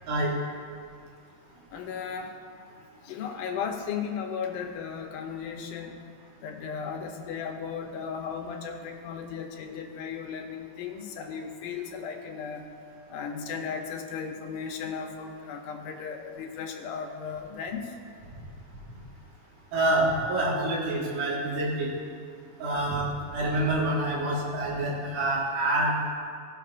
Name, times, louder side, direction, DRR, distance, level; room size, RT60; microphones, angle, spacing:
voice 1, 1.7-2.3 3.0-6.0 6.4-12.7 13.1-17.8, left 6 dB, 85° left, 3 dB, 2.4 m, -35 dB
voice 2, 19.7-21.9 22.6-25.9, right 1 dB, 90° right, -4 dB, 3.2 m, -27 dB
17.0 x 5.8 x 2.5 m, 2.2 s
omnidirectional pair, 3.6 m